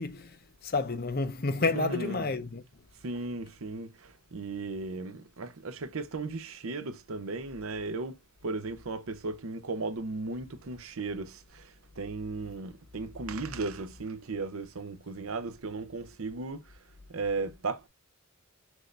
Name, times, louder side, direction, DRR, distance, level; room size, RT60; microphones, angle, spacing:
voice 1, 0.0-2.9, left 3 dB, 45° left, 0.7 m, -31 dB
voice 2, 1.7-2.1 3.0-16.7 17.1-17.9, right 3 dB, 75° right, 0.7 m, -36 dB
6.2 x 2.6 x 3.2 m
head